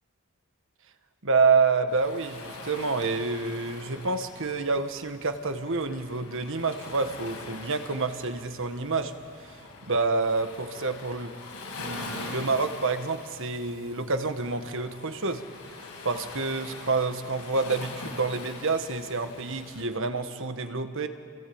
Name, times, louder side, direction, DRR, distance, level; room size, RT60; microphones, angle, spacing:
voice 1, 1.2-9.1 9.9-11.3 11.8-15.4 16.0-21.1, right 4 dB, 60° right, 8 dB, 1.5 m, -28 dB
Waves surf, 1.9-19.9, left 3 dB, 85° left, 7.0 m, -43 dB
28.0 x 24.0 x 8.7 m, 2.6 s
head